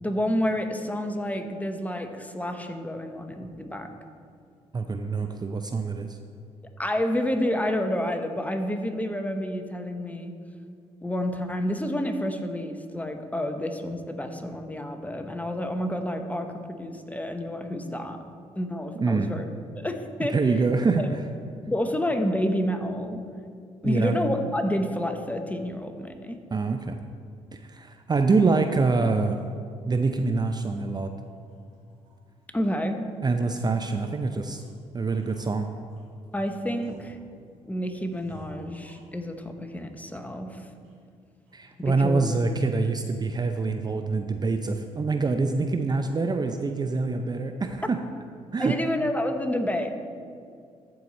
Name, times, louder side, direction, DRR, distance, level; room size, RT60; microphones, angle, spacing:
voice 1, 0.0-3.9 6.8-10.3 11.0-18.2 18.6-19.4 19.8-20.3 21.0-21.1 21.7-23.2 23.8-26.4 32.5-33.0 36.3-37.2 37.6-40.7 41.8-42.3 47.8-47.9 48.6-49.9, left 1 dB, 10° left, 6 dB, 1.1 m, -29 dB
voice 2, 4.7-6.2 19.0-19.3 20.3-21.2 23.8-24.2 26.5-27.0 27.5-29.4 29.9-31.1 33.2-34.6 34.9-35.7 41.5-48.0 48.5-48.8, right 4 dB, 30° right, 6 dB, 0.6 m, -25 dB
sound 1, 30.1-30.3 30.7-30.9 31.3-32.2 32.6-33.2 33.5-36.1 36.6-37.6 38.1-39.5 39.9-40.5 40.8-40.9 41.5-41.8, right 1 dB, 90° right, 2.5 m, -52 dB
14.0 x 4.7 x 4.1 m, 2.2 s
supercardioid pair, 55°, 14 cm